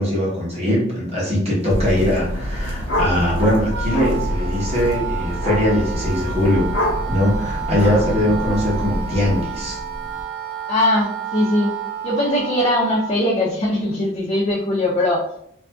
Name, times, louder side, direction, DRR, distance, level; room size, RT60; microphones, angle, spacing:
voice 1, 0.0-6.7 7.1-9.8, left 1 dB, 35° right, -5 dB, 1.0 m, -21 dB
sound 1, 1.7-9.4, equal, 80° right, 0.9 m, -27 dB
sound 2, 1.8-2.2 2.4-10.2, left 1 dB, 75° left, 0.8 m, -29 dB
Wind instrument woodwind instrument, 3.2-13.2, right 8 dB, 55° right, 0.5 m, -31 dB
voice 2, 10.7-11.7 12.0-15.2, left 1 dB, 30° left, -6 dB, 0.5 m, -20 dB
2.6 x 2.5 x 2.2 m, 0.71 s
head